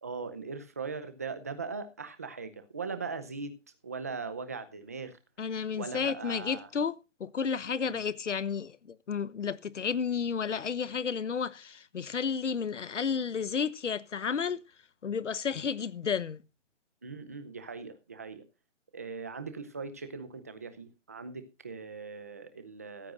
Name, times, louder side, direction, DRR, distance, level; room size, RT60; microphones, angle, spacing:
voice 1, 0.0-3.5 3.8-5.2 5.7-6.7 7.8-8.0 17.0-18.4 18.9-23.1, right 4 dB, 15° right, 0.7 m, -40 dB
voice 2, 5.4-14.6 15.0-16.4, left 6 dB, 80° left, 1.2 m, -32 dB
15.0 x 14.5 x 2.5 m
hypercardioid pair, 170°, 36 cm